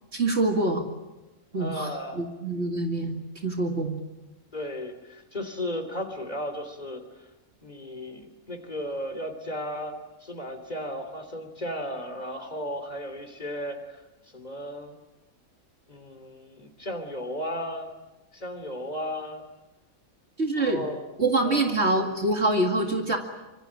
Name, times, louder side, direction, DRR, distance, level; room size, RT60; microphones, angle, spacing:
voice 1, 0.1-0.9 1.5-4.0 20.4-20.8 21.2-23.2, right 2 dB, 50° right, 3 dB, 2.5 m, -25 dB
voice 2, 1.5-2.3 4.5-7.3 7.6-9.9 10.2-14.0 14.3-15.0 15.9-17.9 18.3-19.5 20.6-21.0 21.4-21.7, equal, 30° left, 6 dB, 3.4 m, -35 dB
26.0 x 24.0 x 8.9 m, 1.1 s
omnidirectional pair, 1.5 m